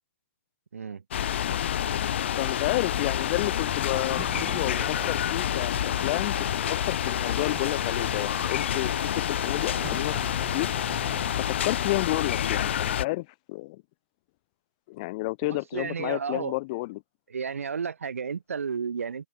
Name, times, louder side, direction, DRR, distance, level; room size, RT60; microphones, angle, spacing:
sound 1, 1.1-13.1, left 10 dB, 55° left, 0.5 m, -28 dB
sound 2, 2.1-12.9, right 10 dB, 15° right, 1.8 m, -46 dB
voice 1, 2.4-10.2 10.5-10.7 11.4-13.8 14.9-17.0, left 22 dB, 35° left, 1.1 m, -31 dB
voice 2, 15.4-16.5 17.3-19.3, right 6 dB, 85° right, 3.2 m, -32 dB
open air
hypercardioid pair, 150°, 7 cm